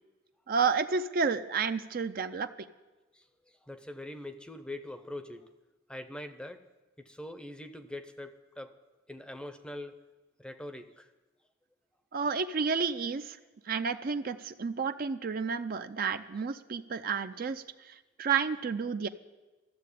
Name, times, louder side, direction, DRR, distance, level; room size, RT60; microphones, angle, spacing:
voice 1, 0.5-2.7 12.1-13.4 13.7-19.1, right 5 dB, 45° right, 10 dB, 0.5 m, -31 dB
voice 2, 3.1-5.5 5.9-6.6 7.0-8.7 9.1-10.0 10.4-11.1, left 1 dB, 5° left, 9 dB, 0.6 m, -43 dB
13.0 x 7.5 x 9.9 m, 1.2 s
head